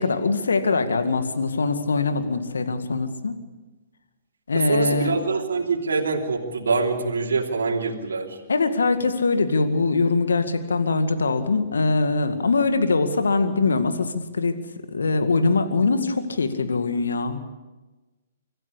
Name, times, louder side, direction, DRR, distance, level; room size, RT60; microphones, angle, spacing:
voice 1, 0.0-3.4 4.5-5.1 8.5-14.6 14.9-17.4, left 3 dB, 80° left, 8 dB, 2.0 m, -22 dB
voice 2, 4.5-8.4, right 4 dB, 75° right, 0 dB, 3.0 m, -24 dB
25.0 x 14.5 x 8.5 m, 1.2 s
figure-of-eight pair, 120°, 0 cm